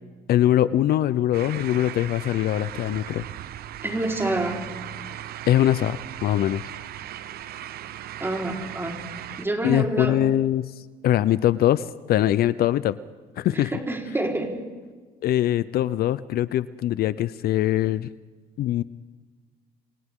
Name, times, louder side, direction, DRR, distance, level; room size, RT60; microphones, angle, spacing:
voice 1, 0.3-3.2 5.5-6.6 9.6-10.7 11.0-12.9 13.4-13.7 15.2-18.1 18.6-18.8, left 12 dB, 65° left, 16 dB, 0.7 m, -22 dB
sound 1, 1.3-9.5, right 11 dB, 65° right, 1.0 m, -37 dB
voice 2, 3.8-4.8 8.2-9.1 9.4-10.2 13.5-14.7, right 2 dB, 15° right, 1 dB, 4.5 m, -28 dB
30.0 x 25.5 x 3.8 m, 1.4 s
cardioid pair, 110°, 17 cm